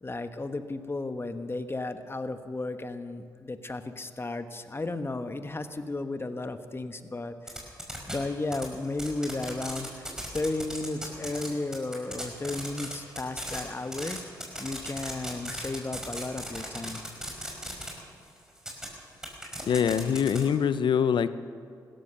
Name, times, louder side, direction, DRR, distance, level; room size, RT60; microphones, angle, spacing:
voice 1, 0.0-7.6 8.1-10.1 10.3-14.2 14.6-17.0, left 2 dB, 30° left, 9 dB, 1.2 m, -34 dB
sound 1, 7.5-8.1 8.5-11.5 11.7-17.9 18.6-18.9 19.2-20.4, equal, 5° right, 5.1 m, -36 dB
voice 2, 19.7-21.3, left 7 dB, 70° left, 14 dB, 0.7 m, -24 dB
16.0 x 13.5 x 6.6 m, 2.3 s
supercardioid pair, 50°, 8 cm